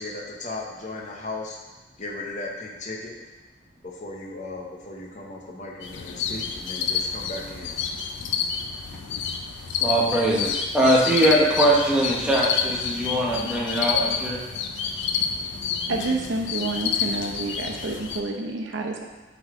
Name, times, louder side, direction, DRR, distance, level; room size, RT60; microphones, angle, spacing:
voice 1, 0.0-1.6 2.0-3.1 3.8-7.8, left 2 dB, 40° left, -2 dB, 0.9 m, -36 dB
sound 1, 5.8-18.2, left 6 dB, 75° left, 0.5 m, -29 dB
voice 2, 9.8-14.4, right 1 dB, 5° right, -4 dB, 1.0 m, -21 dB
voice 3, 15.9-19.1, right 2 dB, 90° right, 2 dB, 0.8 m, -29 dB
7.7 x 4.0 x 3.7 m, 1.1 s
head